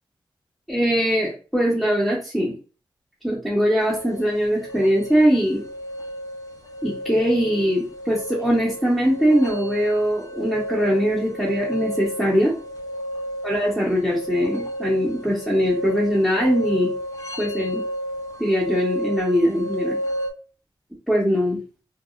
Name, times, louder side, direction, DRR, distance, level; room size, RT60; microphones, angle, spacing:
voice 1, 0.7-2.5 3.2-5.6 6.8-12.5 13.4-16.9 17.4-17.8 18.4-20.0 21.1-21.6, equal, 5° left, -6 dB, 0.7 m, -21 dB
sound 1, 3.8-20.3, equal, 40° left, 0.4 m, -32 dB
2.8 x 2.3 x 2.3 m, 0.35 s
wide cardioid pair, 130°, 9 cm